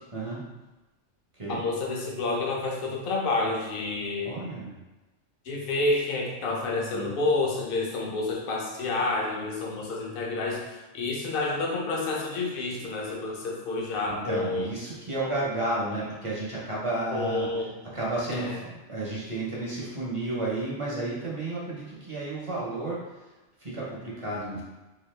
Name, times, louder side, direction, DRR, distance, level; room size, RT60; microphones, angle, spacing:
voice 1, 1.5-4.4 5.4-14.7 17.1-17.7 18.3-18.6, left 3 dB, 50° left, -1 dB, 0.8 m, -29 dB
voice 2, 4.2-4.7 6.9-7.2 14.1-17.5 17.9-23.0 23.6-24.6, right 2 dB, 30° right, -6 dB, 0.6 m, -32 dB
4.0 x 2.4 x 3.1 m, 1.1 s
omnidirectional pair, 1.4 m